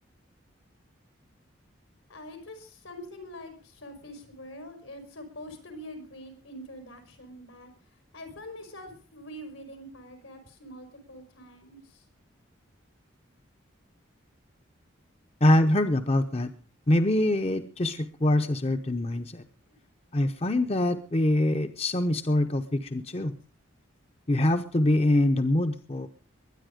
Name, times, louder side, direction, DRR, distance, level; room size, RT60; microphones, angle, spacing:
voice 1, 2.1-12.0 19.7-19.8, left 1 dB, 85° left, 7 dB, 5.0 m, -45 dB
voice 2, 15.4-16.5 16.9-19.4 20.1-23.3 24.3-26.1, left 1 dB, 30° left, 9 dB, 0.8 m, -24 dB
22.0 x 10.0 x 5.1 m, 0.37 s
head